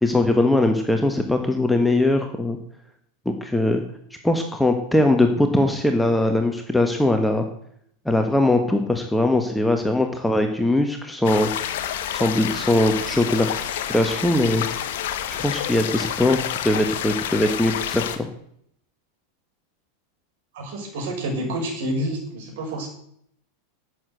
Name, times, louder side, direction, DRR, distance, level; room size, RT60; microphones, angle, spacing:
voice 1, 0.0-2.6 3.2-3.8 4.2-7.4 8.0-11.5 12.1-14.8 15.3-18.3, left 1 dB, 5° left, 4 dB, 1.4 m, -21 dB
sound 1, 11.2-18.2, left 10 dB, 55° left, 1.3 m, -29 dB
voice 2, 20.5-22.9, right 1 dB, 55° right, 1 dB, 6.2 m, -28 dB
12.5 x 8.0 x 8.0 m, 0.67 s
figure-of-eight pair, 90°, 0 cm